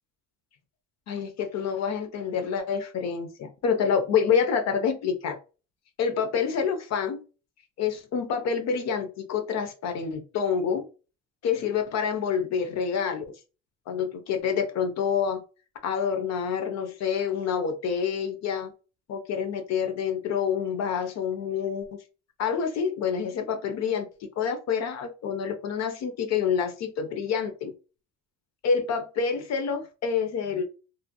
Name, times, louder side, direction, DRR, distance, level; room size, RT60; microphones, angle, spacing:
voice 1, 1.1-5.3 6.0-7.2 7.8-10.8 11.4-13.3 13.9-15.4 15.8-18.7 19.1-22.0 22.4-24.1 24.4-27.7 28.6-30.6, left 6 dB, 60° left, 6 dB, 0.8 m, -27 dB
3.1 x 2.6 x 2.3 m, 0.32 s
cardioid pair, 115°, 30 cm